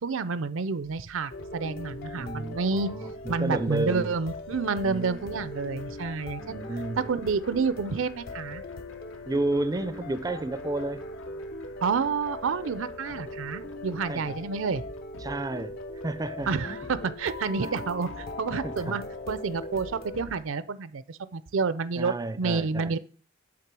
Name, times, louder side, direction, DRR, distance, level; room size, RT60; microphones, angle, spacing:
voice 1, 0.0-2.9 3.3-6.6 7.0-8.6 11.8-14.8 16.5-23.0, right 4 dB, 75° right, 0.5 m, -29 dB
sound 1, 0.8-20.4, left 1 dB, 80° left, 1.0 m, -50 dB
sound 2, 1.3-20.2, left 2 dB, 50° left, 0.6 m, -40 dB
voice 2, 2.2-4.1 4.8-5.3 6.4-7.1 9.3-11.1 14.1-14.4 15.2-15.8 16.0-16.8 17.6-17.7 18.6-19.0 22.0-23.0, right 2 dB, 20° right, 0.4 m, -32 dB
8.7 x 3.6 x 6.1 m
head